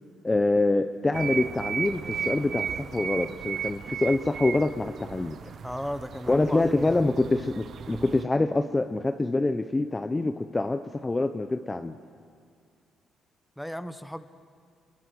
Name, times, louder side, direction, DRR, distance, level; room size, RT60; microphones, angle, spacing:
voice 1, 0.2-5.4 6.3-12.0, left 2 dB, 20° left, 8 dB, 0.9 m, -25 dB
sound 1, 1.1-8.2, right 7 dB, 60° right, 1.0 m, -35 dB
voice 2, 5.6-7.0 13.6-14.3, equal, ahead, 10 dB, 1.3 m, -35 dB
28.5 x 22.0 x 8.0 m, 2.1 s
cardioid pair, 90°, 0 cm